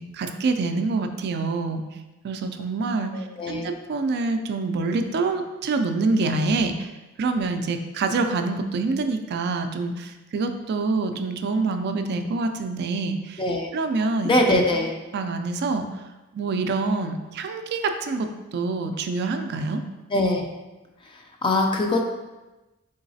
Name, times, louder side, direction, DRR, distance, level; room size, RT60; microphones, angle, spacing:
voice 1, 0.1-1.8 2.2-3.1 3.5-6.9 7.2-13.4 13.7-14.6 15.1-15.9 16.3-19.8, right 3 dB, 50° right, 7 dB, 0.3 m, -26 dB
voice 2, 3.1-3.7 13.4-13.7 14.2-14.9 20.1-20.5 21.0-22.1, left 1 dB, 25° left, 3 dB, 0.4 m, -23 dB
3.8 x 3.8 x 2.7 m, 1.1 s
head